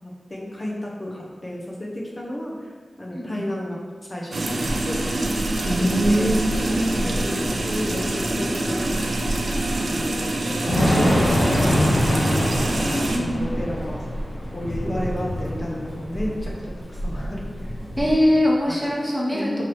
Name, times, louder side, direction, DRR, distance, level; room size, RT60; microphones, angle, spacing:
voice 1, 0.0-2.7 3.0-3.8 4.1-5.0 5.8-6.3 6.6-9.2 9.8-12.3 12.7-14.0 14.5-17.7 18.7-18.8 19.3-19.6, left 1 dB, 35° left, -3 dB, 0.7 m, -32 dB
voice 2, 3.1-3.4 5.6-7.1 12.8-13.4 18.0-19.6, equal, 10° right, -4 dB, 0.9 m, -22 dB
sound 1, 4.3-13.2, right 1 dB, 60° right, 0.4 m, -26 dB
Thunder / Rain, 4.7-18.1, equal, 65° left, 1.2 m, -26 dB
5.6 x 3.0 x 3.1 m, 1.5 s
wide cardioid pair, 85°, 0 cm